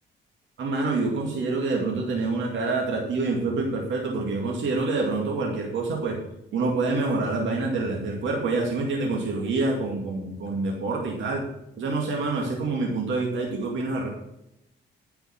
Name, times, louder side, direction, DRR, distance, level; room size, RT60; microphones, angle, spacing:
voice 1, 0.6-6.2 6.5-11.4 11.8-14.1, right 3 dB, 70° right, -1 dB, 2.3 m, -26 dB
10.0 x 5.8 x 7.3 m, 0.85 s
cardioid pair, 90°, 20 cm